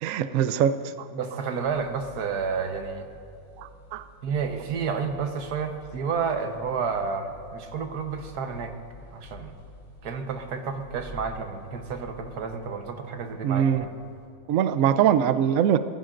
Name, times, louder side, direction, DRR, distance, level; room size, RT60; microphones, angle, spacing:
voice 1, 0.0-1.1 3.6-4.0 13.4-13.8 14.5-15.8, right 9 dB, 85° right, 12 dB, 0.7 m, -23 dB
voice 2, 1.1-3.1 4.2-8.7 9.1-9.5 10.0-14.0, right 5 dB, 60° right, 6 dB, 1.5 m, -30 dB
sound 1, 1.6-14.3, left 1 dB, 55° left, 4.7 m, -49 dB
22.5 x 15.5 x 2.6 m, 2.5 s
omnidirectional pair, 2.0 m